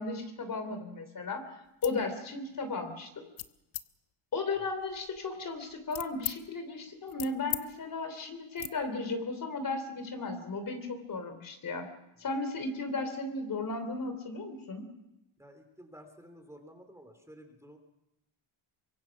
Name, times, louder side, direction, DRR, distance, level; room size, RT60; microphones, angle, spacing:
voice 1, 0.0-3.2 4.3-11.9 12.2-14.9, left 3 dB, 40° left, 7 dB, 3.3 m, -35 dB
sound 1, 1.7-2.0 2.5-2.8 3.4-3.9 4.5-6.4 6.8-7.7 7.9-8.1 8.6-8.7, left 14 dB, 85° left, 1.0 m, -40 dB
voice 2, 15.4-17.8, equal, 5° right, 5 dB, 3.2 m, -52 dB
24.5 x 22.5 x 6.0 m, 0.89 s
cardioid pair, 135°, 50 cm